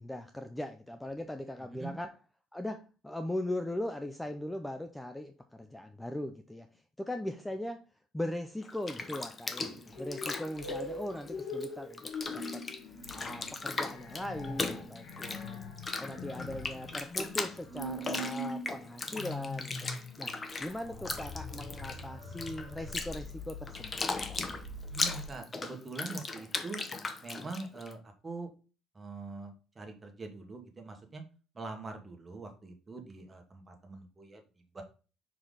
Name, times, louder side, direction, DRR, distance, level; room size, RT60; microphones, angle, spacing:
voice 1, 0.0-2.2 2.5-7.8 8.1-12.6 13.1-15.6 16.0-19.8 20.2-20.3 20.6-24.0, left 1 dB, 5° left, 8 dB, 0.5 m, -39 dB
Bathtub (filling or washing), 8.6-11.7 11.9-27.9, left 3 dB, 25° left, 0.8 m, -38 dB
sound 1, 9.9-25.3, left 2 dB, 50° left, 3.1 m, -42 dB
voice 2, 24.9-26.8 27.2-28.5 28.9-31.2 31.5-34.4 34.7-34.8, right 3 dB, 20° right, 4 dB, 1.6 m, -43 dB
5.7 x 5.0 x 4.0 m, 0.34 s
cardioid pair, 125°, 0 cm